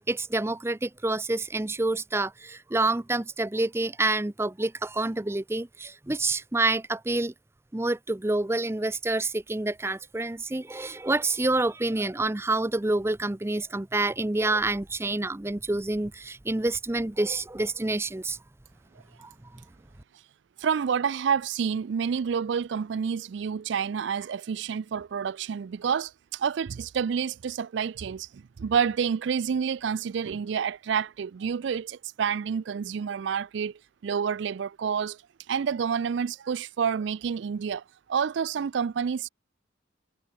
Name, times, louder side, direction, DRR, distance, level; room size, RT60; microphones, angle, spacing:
voice 1, 0.1-7.3 7.7-18.4 19.2-19.3, right 2 dB, 15° right, 0.5 m, -28 dB
voice 2, 20.6-33.7 34.0-35.2 35.5-37.8 38.1-39.3, right 7 dB, 65° right, 0.4 m, -28 dB
head